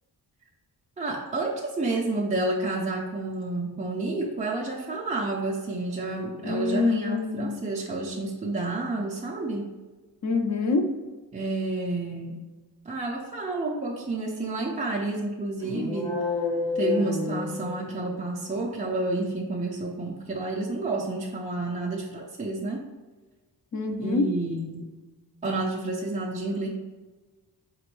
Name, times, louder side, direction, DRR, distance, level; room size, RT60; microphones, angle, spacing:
voice 1, 1.0-9.7 11.3-12.4 12.9-16.2 16.7-22.8 24.0-24.9 25.4-26.7, right 2 dB, 20° right, -3 dB, 0.3 m, -30 dB
voice 2, 6.4-7.7 10.2-10.9 23.7-24.2, left 4 dB, 45° left, 5 dB, 0.5 m, -26 dB
sound 1, 15.6-18.2, left 4 dB, 75° left, 1.5 m, -29 dB
4.2 x 3.0 x 3.1 m, 1.3 s
wide cardioid pair, 145°, 42 cm